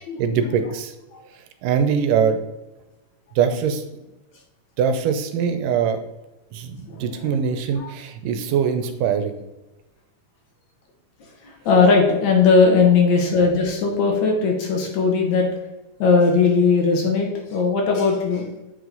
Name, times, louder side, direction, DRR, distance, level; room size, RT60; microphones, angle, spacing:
voice 1, 0.2-0.9 1.6-2.4 3.4-3.8 4.8-6.0 6.5-9.4, right 7 dB, 90° right, 8 dB, 2.3 m, -22 dB
voice 2, 6.9-7.3 7.8-7.9 11.4-15.5 16.0-18.5, left 4 dB, 65° left, 1 dB, 2.3 m, -18 dB
7.8 x 4.8 x 3.9 m, 0.99 s
omnidirectional pair, 3.7 m